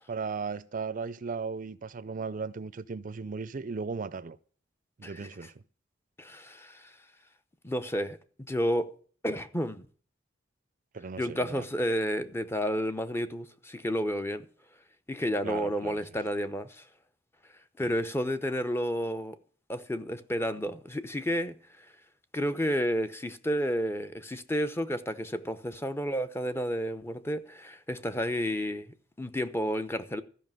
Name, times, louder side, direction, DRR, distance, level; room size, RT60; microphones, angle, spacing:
voice 1, 0.1-4.4 5.0-5.6 10.9-11.7 15.4-16.0 17.8-17.9, right 5 dB, 45° right, 0.5 m, -36 dB
voice 2, 6.2-6.9 7.6-8.2 8.5-8.9 9.2-9.9 11.2-14.5 15.1-16.8 17.8-19.4 19.7-21.6 22.3-30.2, equal, 15° left, 0.8 m, -31 dB
13.5 x 5.7 x 9.1 m
head